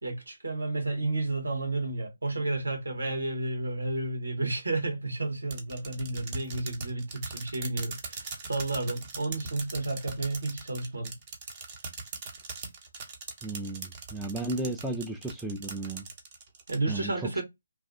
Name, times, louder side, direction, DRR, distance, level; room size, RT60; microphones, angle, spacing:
voice 1, 0.0-11.1 16.7-17.4, right 2 dB, 70° right, 1.8 m, -31 dB
sound 1, 5.5-16.8, right 4 dB, 25° right, 0.9 m, -40 dB
voice 2, 13.4-16.0 16.9-17.4, right 2 dB, ahead, 0.3 m, -34 dB
3.2 x 2.3 x 2.6 m
figure-of-eight pair, 145°, 0 cm